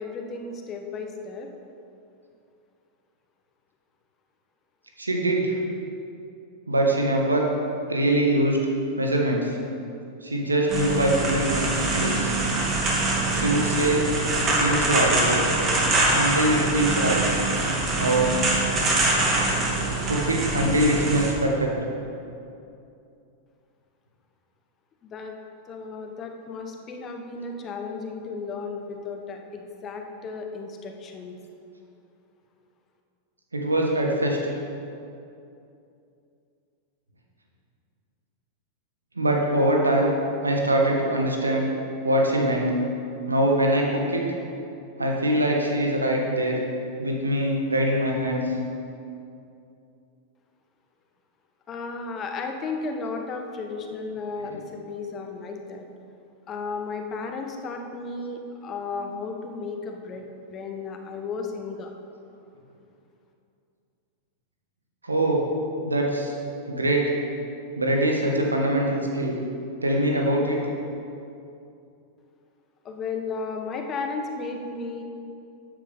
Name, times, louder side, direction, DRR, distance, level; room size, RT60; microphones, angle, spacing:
voice 1, 0.0-1.5 25.0-25.3 25.7-31.4 51.7-55.9 56.5-60.3 60.5-61.9 72.8-75.0, left 4 dB, 30° left, 4 dB, 1.2 m, -34 dB
voice 2, 5.0-5.5 6.7-7.4 7.9-8.6 9.0-9.6 10.2-12.3 13.3-14.1 14.6-15.5 16.1-17.2 18.0-18.4 20.1-21.7 33.5-34.4 39.1-40.1 40.4-41.7 42.0-42.7 43.3-44.2 45.0-46.6 47.0-48.4 54.4-54.6 65.0-65.4 65.8-66.3 66.7-67.1 67.7-69.4 69.8-70.6, right 1 dB, 80° right, 0 dB, 1.7 m, -23 dB
sound 1, 10.7-21.3, right 2 dB, 30° right, 2.7 m, -24 dB
13.0 x 9.0 x 3.7 m, 2.6 s
figure-of-eight pair, 90°, 0 cm